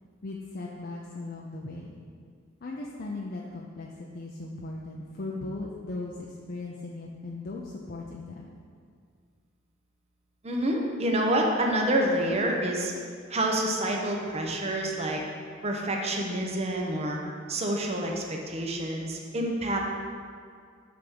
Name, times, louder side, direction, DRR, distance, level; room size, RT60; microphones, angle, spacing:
voice 1, 0.2-2.0 2.6-8.6, left 2 dB, 50° left, -2 dB, 0.6 m, -38 dB
voice 2, 10.4-12.9 13.3-15.2 15.6-17.2 17.5-20.0, right 1 dB, 35° right, 0 dB, 0.9 m, -28 dB
8.4 x 3.6 x 6.2 m, 2.1 s
head